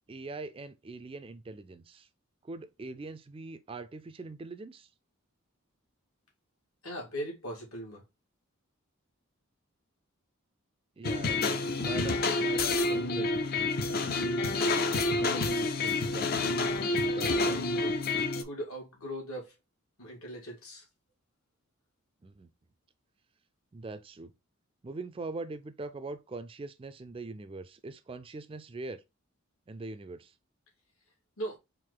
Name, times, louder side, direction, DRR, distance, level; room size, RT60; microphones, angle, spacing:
voice 1, 0.1-2.1 2.4-4.9 11.0-13.4 14.8-16.5 16.9-17.6 22.2-22.5 23.7-24.3 24.8-29.0 29.7-30.3, right 3 dB, 25° right, 0.3 m, -42 dB
voice 2, 6.8-8.0 17.1-19.6 20.0-20.9 31.4-31.6, equal, 80° left, 2.1 m, -40 dB
sound 1, 11.0-18.4, left 2 dB, 45° left, 0.5 m, -28 dB
4.5 x 2.6 x 3.8 m
head